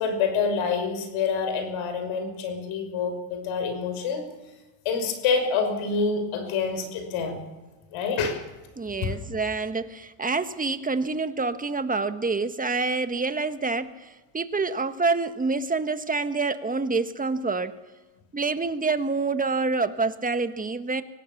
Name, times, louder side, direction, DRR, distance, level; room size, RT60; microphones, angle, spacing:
voice 1, 0.0-4.2 4.8-7.4 7.9-8.4 9.0-9.1, left 5 dB, 75° left, 6 dB, 6.1 m, -27 dB
voice 2, 8.8-17.7 18.3-21.0, right 3 dB, 15° right, 10 dB, 1.5 m, -27 dB
24.5 x 17.5 x 7.2 m, 1.2 s
supercardioid pair, 100°, 49 cm